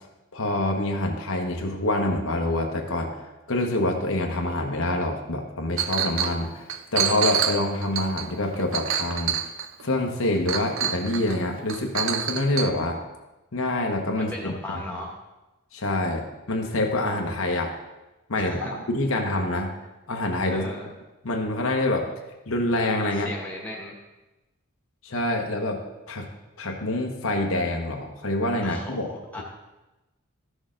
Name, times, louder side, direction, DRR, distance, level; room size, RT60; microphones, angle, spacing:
voice 1, 0.3-3.2 3.5-9.3 9.8-13.0 13.5-14.8 15.7-16.2 16.5-17.7 18.3-19.7 20.1-20.7 21.2-22.1 22.5-23.3 25.0-25.8 26.1-26.3 26.6-29.1, left 1 dB, 65° left, 2 dB, 1.1 m, -26 dB
Chink clink, 5.8-6.4 6.7-9.8 10.5-11.4 11.7-12.7, right 8 dB, 65° right, 0.5 m, -27 dB
voice 2, 14.1-15.1 18.3-18.7 20.5-20.9 23.1-23.9 28.6-29.4, left 1 dB, 5° left, -2 dB, 1.6 m, -37 dB
13.5 x 6.4 x 3.8 m, 1.1 s
head